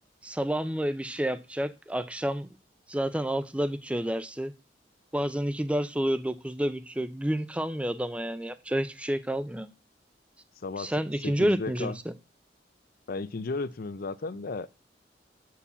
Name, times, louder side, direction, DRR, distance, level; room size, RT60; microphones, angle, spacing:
voice 1, 0.2-2.6 2.9-4.5 5.1-9.7 10.8-11.9, equal, 5° right, 0.5 m, -29 dB
voice 2, 10.6-10.9 11.2-12.0 13.1-14.7, left 3 dB, 50° left, 0.5 m, -34 dB
8.5 x 4.7 x 6.8 m
head